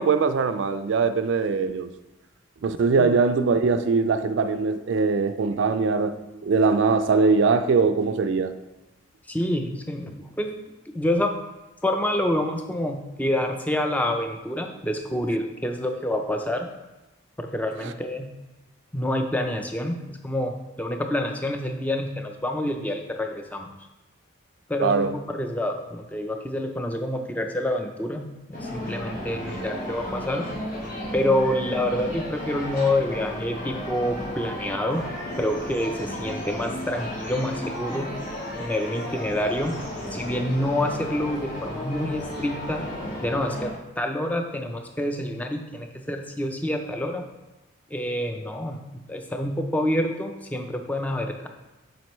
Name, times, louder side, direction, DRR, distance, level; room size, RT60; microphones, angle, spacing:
voice 1, 0.0-1.9 2.6-6.2 6.4-8.5 17.8-17.9 24.8-25.2, right 4 dB, 60° right, 0.3 m, -21 dB
voice 2, 9.3-10.5 10.9-11.3 11.8-16.7 17.4-18.3 18.9-23.7 24.7-30.5 31.1-35.1 35.4-38.1 38.6-39.8 40.1-42.8 43.2-47.2 47.9-48.8 49.1-51.5, left 1 dB, 5° left, 0.4 m, -27 dB
sound 1, 28.5-43.7, left 1 dB, 40° left, 1.6 m, -34 dB
7.6 x 5.1 x 3.1 m
head